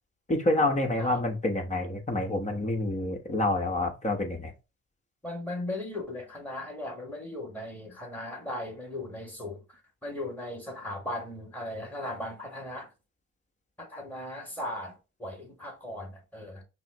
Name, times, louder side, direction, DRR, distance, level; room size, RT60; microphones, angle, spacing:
voice 1, 0.3-4.5, left 2 dB, 25° left, 1.1 m, -28 dB
voice 2, 5.2-12.9 13.8-16.6, left 1 dB, 5° left, 1.8 m, -38 dB
5.7 x 2.0 x 3.5 m
cardioid pair, 90°, 30 cm